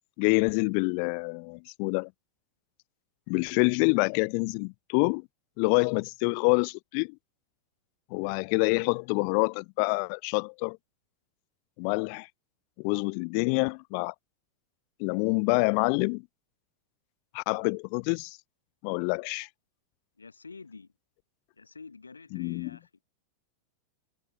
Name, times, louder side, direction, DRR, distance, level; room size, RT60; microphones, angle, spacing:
voice 1, 0.2-2.1 3.3-5.3 5.6-7.2 8.1-10.8 11.8-12.3 12.8-14.1 15.0-16.2 17.3-18.4 18.8-19.5 22.3-22.7, left 40 dB or more, 45° left, 0.3 m, -27 dB
voice 2, 20.2-20.9 21.5-23.0, left 4 dB, 75° left, 1.2 m, -48 dB
figure-of-eight pair, 90°, 0 cm